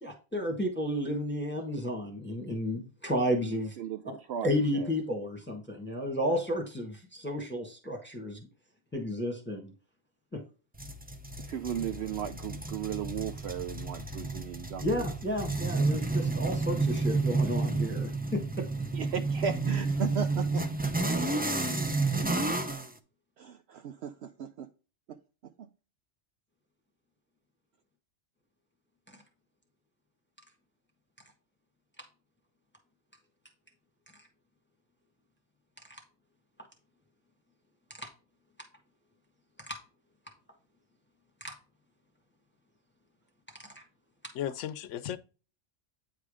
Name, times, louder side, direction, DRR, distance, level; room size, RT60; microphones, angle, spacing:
voice 1, 0.0-3.8 4.0-4.2 4.4-8.5 8.9-9.7 10.3-10.4 14.8-18.6 35.9-36.0 38.0-38.1 39.7-39.8 41.4-41.5 43.7-43.8, equal, 10° left, 1.4 m, -32 dB
voice 2, 3.8-4.9 11.5-14.9 18.9-20.6 23.4-24.7, right 8 dB, 65° right, 0.8 m, -36 dB
sound 1, 10.8-22.9, right 3 dB, 10° right, 0.4 m, -31 dB
voice 3, 44.3-45.2, left 10 dB, 80° left, 0.9 m, -35 dB
9.2 x 3.6 x 4.9 m
omnidirectional pair, 1.3 m